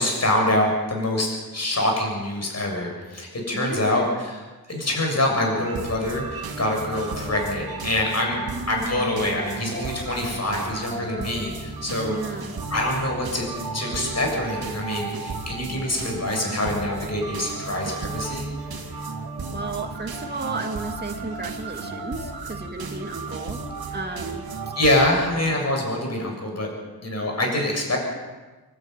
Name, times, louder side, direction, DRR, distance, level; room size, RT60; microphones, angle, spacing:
voice 1, 0.0-4.4 4.7-8.4 8.7-12.4 12.7-13.5 13.7-18.5 24.8-26.7 27.0-28.0, left 1 dB, 45° left, 1 dB, 6.9 m, -25 dB
voice 2, 3.5-4.2 8.4-9.5 12.1-12.5 19.5-23.6 23.9-24.4, right 3 dB, 25° right, 3 dB, 2.7 m, -33 dB
sound 1, 5.6-25.1, right 4 dB, 75° right, 3.0 m, -34 dB
27.0 x 12.0 x 9.3 m, 1.2 s
wide cardioid pair, 85°, 37 cm